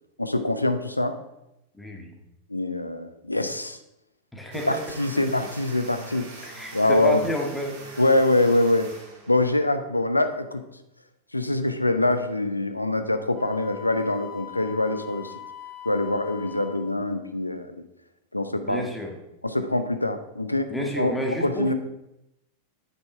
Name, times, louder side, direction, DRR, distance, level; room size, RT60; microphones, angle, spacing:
voice 1, 0.2-1.2 2.5-3.8 4.7-6.5 6.7-7.2 8.0-8.9 9.3-10.6 11.3-15.3 15.8-17.8 18.3-18.9 19.4-21.1 21.4-21.7, left 2 dB, 85° left, 9 dB, 0.7 m, -24 dB
voice 2, 1.7-2.2 4.3-4.8 6.4-7.8 18.6-19.1 20.7-21.7, equal, 5° left, 1 dB, 1.7 m, -30 dB
sound 1, 4.5-9.7, right 3 dB, 45° right, 2.8 m, -43 dB
Wind instrument woodwind instrument, 13.3-16.9, left 9 dB, 25° left, 1.4 m, -41 dB
8.9 x 7.1 x 4.4 m, 0.88 s
figure-of-eight pair, 90°, 0 cm